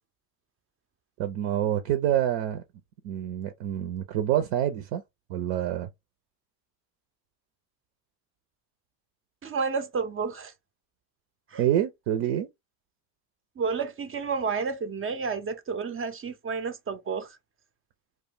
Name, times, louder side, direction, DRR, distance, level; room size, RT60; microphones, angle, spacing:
voice 1, 1.2-2.6 3.0-5.0 5.3-5.9 11.6-12.5, right 11 dB, 70° right, 0.7 m, -27 dB
voice 2, 9.4-10.5 11.5-11.6 13.6-17.4, right 5 dB, 25° right, 0.5 m, -30 dB
2.4 x 2.2 x 3.7 m
supercardioid pair, 75°, 50 cm